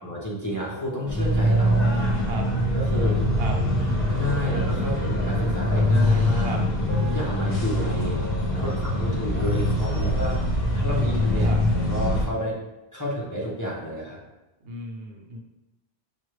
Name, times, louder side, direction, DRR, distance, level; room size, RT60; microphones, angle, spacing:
voice 1, 0.0-2.2 2.7-3.2 3.8-6.6 7.0-8.2 8.5-10.4 10.7-12.6 12.9-14.2, equal, 20° left, -5 dB, 0.6 m, -30 dB
sound 1, 1.1-12.2, left 1 dB, 45° left, 1.2 m, -23 dB
voice 2, 14.6-15.4, right 2 dB, 70° right, 1 dB, 0.8 m, -35 dB
5.3 x 2.4 x 3.1 m, 0.96 s
omnidirectional pair, 1.1 m